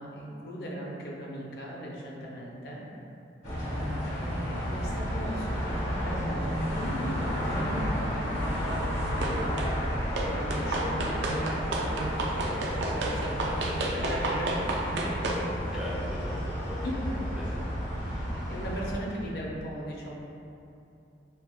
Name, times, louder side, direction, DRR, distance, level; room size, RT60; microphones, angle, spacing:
voice 1, 0.0-2.8 4.1-9.9 10.2-14.6 14.9-15.0 16.8-16.9 18.5-20.1, right 1 dB, 60° left, -4 dB, 0.7 m, -38 dB
sound 1, 3.4-18.9, equal, 75° left, 1.3 m, -32 dB
voice 2, 3.5-3.9 15.4-18.4, equal, 5° right, -6 dB, 0.3 m, -42 dB
sound 2, 9.2-9.7 10.2-15.4, right 2 dB, 75° right, 0.4 m, -32 dB
6.5 x 2.2 x 2.3 m, 2.8 s
head